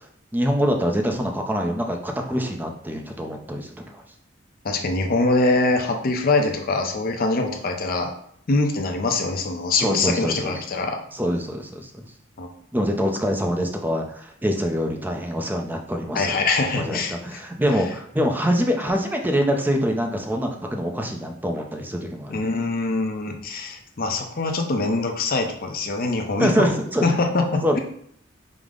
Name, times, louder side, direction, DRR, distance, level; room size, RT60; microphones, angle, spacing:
voice 1, 0.3-4.0 9.8-10.6 11.1-12.0 12.7-16.4 16.8-22.5 26.4-27.1 27.6-27.8, equal, 10° right, 3 dB, 0.4 m, -25 dB
voice 2, 4.6-8.1 8.5-11.0 12.4-12.5 16.1-17.2 22.3-26.7 27.0-27.8, left 3 dB, 50° left, 4 dB, 0.6 m, -23 dB
5.0 x 2.0 x 3.7 m, 0.66 s
head